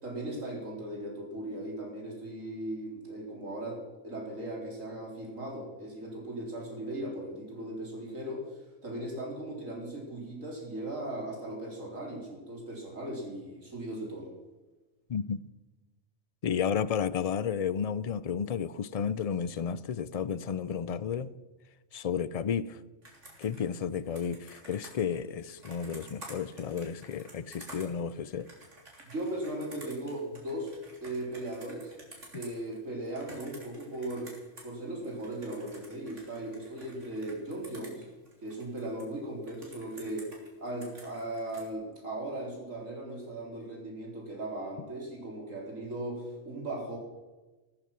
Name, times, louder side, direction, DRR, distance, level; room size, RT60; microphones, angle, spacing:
voice 1, 0.0-14.3 29.0-31.9 32.3-34.3 34.6-38.0 38.4-40.3 40.6-47.0, right 1 dB, 85° right, 4.4 m, -38 dB
voice 2, 16.4-21.3 21.9-22.8 23.4-28.5, left 7 dB, 60° left, 0.3 m, -32 dB
Computer keyboard, 23.0-34.7 35.0-39.0 39.4-41.7, right 1 dB, 65° right, 3.8 m, -52 dB
14.0 x 13.5 x 6.0 m
omnidirectional pair, 1.3 m